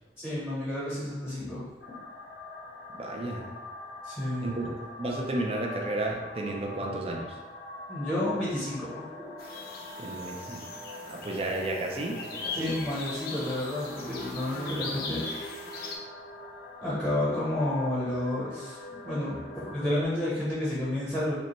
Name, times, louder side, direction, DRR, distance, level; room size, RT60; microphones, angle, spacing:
voice 1, 0.2-1.7 4.0-4.5 7.9-9.0 12.5-15.2 16.8-21.3, left 1 dB, 5° right, -9 dB, 0.8 m, -30 dB
sound 1, 1.8-20.0, left 1 dB, 85° left, 0.8 m, -44 dB
voice 2, 3.0-3.5 4.4-4.7 5.0-7.4 10.0-10.6 11.0-12.7, right 2 dB, 35° right, 0 dB, 0.4 m, -32 dB
sound 2, 9.4-16.0, left 3 dB, 55° left, 0.5 m, -40 dB
5.1 x 2.2 x 3.0 m, 1.1 s
head